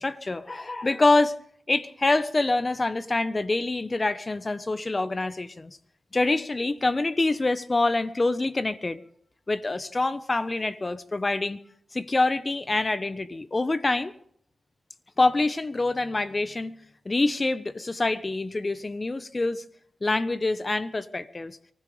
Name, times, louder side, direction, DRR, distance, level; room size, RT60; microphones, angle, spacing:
voice 1, 0.0-1.3 1.7-5.8 6.1-9.0 9.5-11.6 11.9-14.1 15.2-16.8 17.0-19.6 20.0-21.6, left 2 dB, 35° left, 1.1 m, -26 dB
24.0 x 15.5 x 3.4 m
cardioid pair, 55°, 0 cm